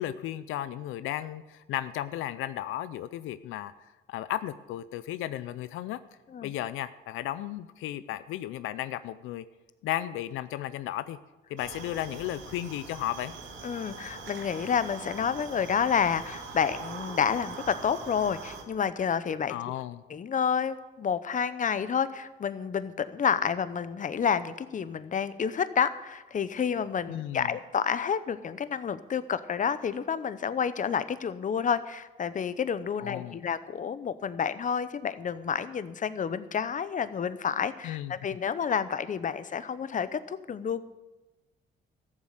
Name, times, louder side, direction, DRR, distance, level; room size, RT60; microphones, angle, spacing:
voice 1, 0.0-6.0 6.4-9.4 9.8-11.2 11.5-13.3 19.5-20.0 27.1-27.5 33.0-33.4 37.8-38.1, left 13 dB, 85° left, 14 dB, 0.5 m, -34 dB
sound 1, 11.6-18.6, right 4 dB, 75° right, 2.2 m, -42 dB
voice 2, 13.6-19.6 20.1-40.8, left 7 dB, 40° left, 14 dB, 0.8 m, -29 dB
14.0 x 7.5 x 8.0 m, 1.1 s
cardioid pair, 90°, 20 cm